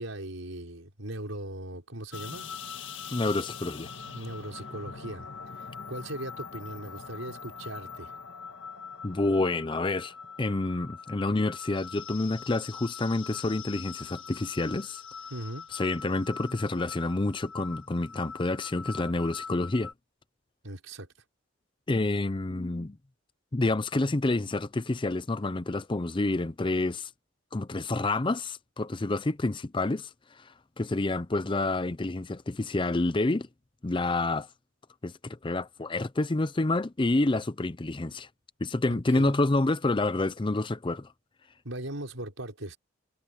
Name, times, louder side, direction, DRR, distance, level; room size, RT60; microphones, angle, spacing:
voice 1, 0.0-2.7 3.0-3.2 3.8-5.3 5.5-8.1 15.3-15.7 20.6-21.1 38.9-39.3 41.6-42.8, right 1 dB, 85° right, 5.6 m, -39 dB
sound 1, 2.1-19.9, left 6 dB, 65° left, 2.0 m, -43 dB
voice 2, 3.1-3.9 9.0-15.0 15.8-19.9 21.9-23.0 23.5-27.1 27.5-30.1 30.8-33.5 33.8-34.5 35.0-38.3 38.6-41.1, left 2 dB, 25° left, 0.6 m, -28 dB
head